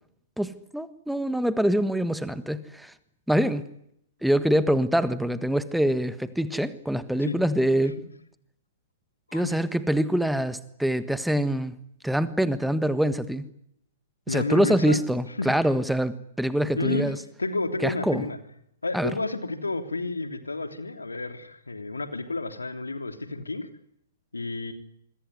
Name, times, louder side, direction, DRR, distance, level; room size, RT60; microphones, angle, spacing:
voice 1, 0.4-2.9 3.3-3.7 4.2-8.0 9.3-11.8 12.0-13.5 14.3-17.2 17.8-18.3 18.9-19.1, right 1 dB, ahead, 13 dB, 1.5 m, -25 dB
voice 2, 14.3-15.0 15.4-15.5 16.7-17.1 17.4-18.4 18.8-23.7 24.3-24.7, left 2 dB, 85° left, 8 dB, 3.3 m, -30 dB
26.5 x 22.5 x 9.7 m, 0.74 s
figure-of-eight pair, 115°, 0 cm